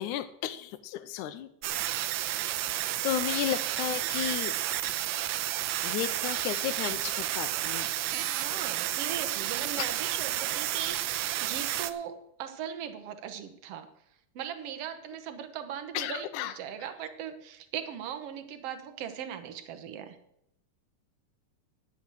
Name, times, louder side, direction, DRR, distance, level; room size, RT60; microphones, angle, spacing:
voice 1, 0.0-1.5 1.9-2.1 3.0-4.6 5.8-7.9 9.8-9.9 15.9-16.9, left 12 dB, 80° left, 11 dB, 2.0 m, -34 dB
sound 1, 1.6-11.9, right 14 dB, 85° right, 2.3 m, -31 dB
voice 2, 8.4-13.9 14.4-20.2, right 9 dB, 60° right, 8 dB, 1.8 m, -39 dB
10.5 x 7.4 x 7.7 m, 0.79 s
omnidirectional pair, 3.7 m